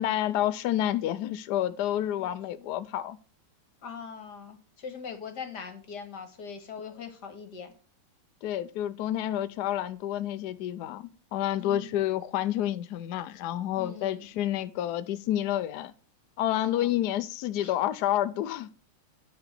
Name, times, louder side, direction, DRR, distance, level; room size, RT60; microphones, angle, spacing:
voice 1, 0.0-3.2 8.4-11.0 11.3-15.9 16.4-18.7, left 12 dB, 80° left, 0.9 m, -29 dB
voice 2, 3.8-7.7 11.6-12.0 13.8-14.3 16.4-16.9 17.6-17.7, left 6 dB, 50° left, 2.0 m, -41 dB
9.6 x 5.0 x 5.9 m
omnidirectional pair, 2.4 m